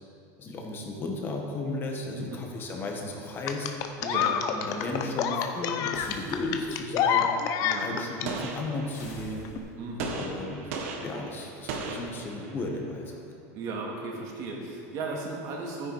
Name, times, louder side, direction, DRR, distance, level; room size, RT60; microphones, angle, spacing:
voice 1, 0.4-3.7 4.5-7.3 7.8-9.5 10.1-10.7 11.0-13.2, left 2 dB, 25° left, 1 dB, 1.8 m, -34 dB
sound 1, 3.5-8.3 9.5-9.6, left 8 dB, 45° left, 0.9 m, -27 dB
voice 2, 4.0-4.4 7.6-7.9 9.8-10.1 13.5-15.9, right 3 dB, 45° right, -2 dB, 2.5 m, -35 dB
sound 2, 5.9-6.9 8.9-10.0, left 2 dB, 90° left, 2.9 m, -46 dB
Gunshot gunfire, 8.3-9.3 10.0-12.8, right 4 dB, 70° right, 1.7 m, -37 dB
12.0 x 9.9 x 5.0 m, 2.5 s
supercardioid pair, 145°, 8 cm